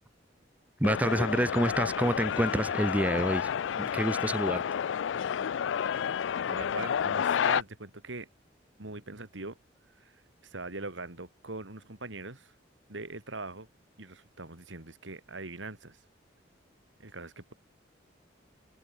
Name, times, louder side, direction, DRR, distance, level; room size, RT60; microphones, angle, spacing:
sound 1, 0.8-7.6, left 8 dB, 80° left, 0.4 m, -30 dB
voice 1, 0.8-4.6, right 1 dB, 10° right, 0.8 m, -28 dB
voice 2, 6.4-8.3 8.8-9.6 10.4-12.5 12.9-13.7 14.0-16.0 17.0-17.5, right 2 dB, 85° right, 3.0 m, -41 dB
head